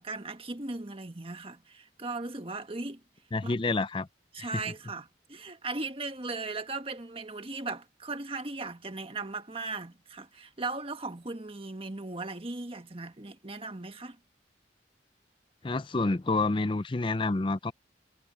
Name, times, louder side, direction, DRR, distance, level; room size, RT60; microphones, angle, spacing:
voice 1, 0.0-3.0 3.4-3.5 4.3-14.2, right 3 dB, 30° right, 1.5 m, -38 dB
voice 2, 3.3-4.1 4.4-4.5 15.6-17.7, left 3 dB, 30° left, 0.5 m, -28 dB
head